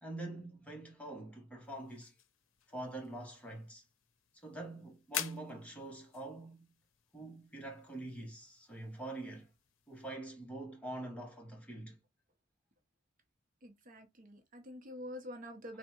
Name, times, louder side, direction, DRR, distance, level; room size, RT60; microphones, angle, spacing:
voice 1, 0.0-2.1 2.7-3.8 4.4-6.6 7.1-9.5 9.9-12.0, right 2 dB, 5° left, 1.0 m, -45 dB
sound 1, 1.6-10.1, left 10 dB, 90° left, 0.5 m, -49 dB
voice 2, 13.6-15.8, left 1 dB, 45° right, 0.7 m, -47 dB
3.4 x 2.2 x 4.3 m
head